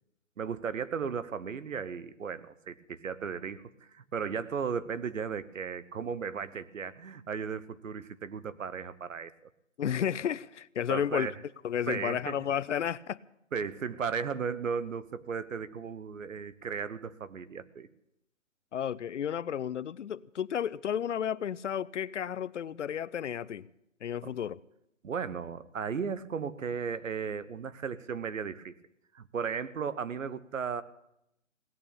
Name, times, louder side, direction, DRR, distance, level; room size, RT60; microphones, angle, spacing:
voice 1, 0.4-9.3 10.9-11.3 11.9-12.4 13.5-17.9 24.2-24.3 25.0-28.7 29.1-30.8, right 6 dB, 75° right, 1.2 m, -35 dB
voice 2, 9.8-11.3 11.6-13.2 18.7-23.7 24.0-24.6, left 9 dB, 65° left, 0.6 m, -32 dB
17.5 x 8.9 x 8.7 m
hypercardioid pair, 165°, 39 cm